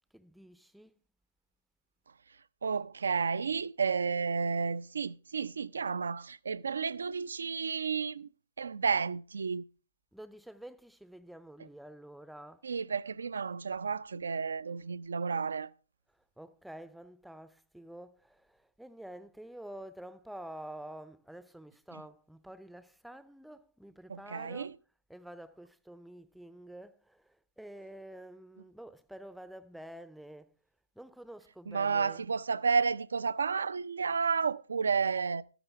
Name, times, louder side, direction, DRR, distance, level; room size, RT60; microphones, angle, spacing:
voice 1, 0.1-0.9 10.1-12.7 16.4-24.8 25.1-30.5 31.0-32.2, right 1 dB, ahead, 0.6 m, -49 dB
voice 2, 2.6-8.3 8.6-9.6 12.6-15.7 24.1-24.7 31.7-35.4, right 5 dB, 65° right, 0.4 m, -31 dB
13.5 x 11.0 x 3.5 m
figure-of-eight pair, 120°, 0 cm